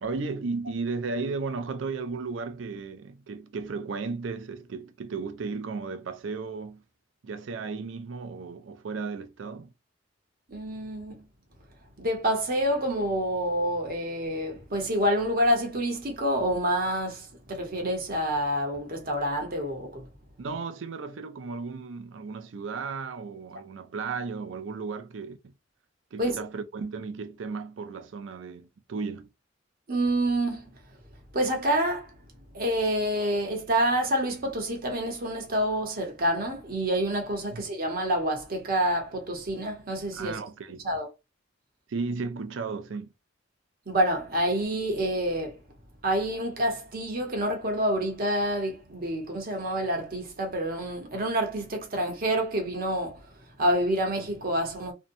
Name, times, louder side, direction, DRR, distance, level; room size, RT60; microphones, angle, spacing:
voice 1, 0.0-6.8 7.2-9.7 20.4-25.5 26.1-29.3 37.5-37.6 40.1-40.9 41.9-43.1, right 4 dB, 70° right, 0.4 m, -35 dB
voice 2, 10.5-11.3 12.0-20.1 26.2-26.4 29.9-30.7 31.3-32.1 32.5-40.4 40.8-41.1 43.9-45.6 46.0-53.3 53.6-54.9, right 1 dB, 50° right, 0.9 m, -27 dB
2.6 x 2.2 x 2.6 m
head